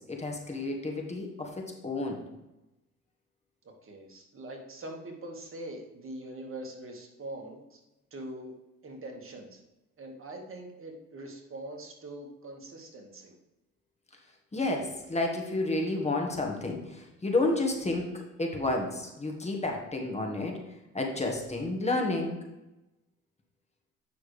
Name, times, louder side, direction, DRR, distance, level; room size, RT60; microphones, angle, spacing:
voice 1, 0.0-2.2 14.5-20.6 20.9-22.4, left 2 dB, 20° left, 1 dB, 1.6 m, -31 dB
voice 2, 3.8-7.8 8.1-8.6 8.8-9.6 10.0-13.3, right 1 dB, 45° right, 2 dB, 1.9 m, -43 dB
9.1 x 6.1 x 3.3 m, 0.97 s
cardioid pair, 90°, 30 cm